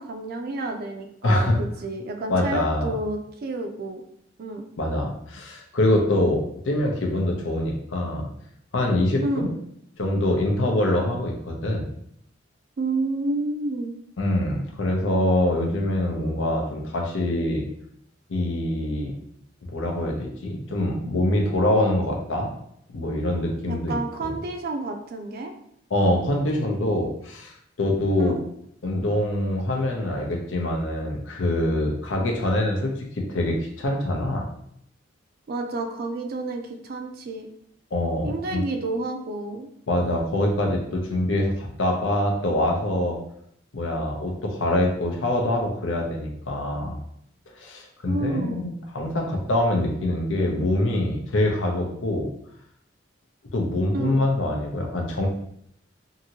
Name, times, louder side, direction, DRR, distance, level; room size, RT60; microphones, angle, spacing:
voice 1, 0.0-4.0 4.4-4.6 9.2-9.5 12.8-13.9 23.7-25.5 28.2-28.4 35.5-37.5 38.2-39.7 48.1-48.6 53.9-54.2, right 2 dB, 50° right, 4 dB, 0.4 m, -30 dB
voice 2, 1.2-1.6 2.3-2.9 4.8-8.3 8.7-9.5 10.0-11.8 14.2-17.6 18.3-19.1 19.7-22.5 22.9-24.3 25.9-28.4 28.8-34.5 37.9-38.6 39.9-43.2 43.7-47.0 47.6-52.3 53.5-55.3, left 1 dB, 85° left, 1 dB, 0.6 m, -24 dB
2.8 x 2.6 x 2.8 m, 0.71 s
head